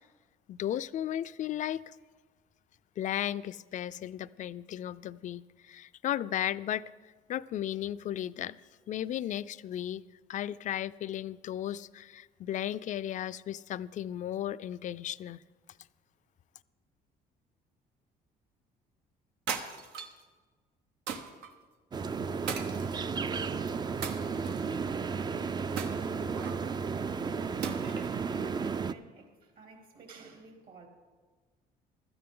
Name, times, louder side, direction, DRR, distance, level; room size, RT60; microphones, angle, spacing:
voice 1, 0.5-1.9 3.0-6.8 7.3-8.6 8.9-10.0 10.3-15.4, left 11 dB, 50° left, 15 dB, 0.4 m, -35 dB
sound 1, 19.5-20.2 21.1-21.5 22.5-23.3 24.0-24.8 25.8-26.6 27.6-28.2, right 6 dB, 90° right, 1.2 m, -38 dB
sound 2, 21.9-28.9, right 5 dB, 25° right, 0.4 m, -33 dB
voice 2, 24.5-30.9, right 4 dB, 60° right, 2 dB, 3.1 m, -51 dB
16.5 x 13.0 x 3.8 m, 1.4 s
cardioid pair, 110°, 17 cm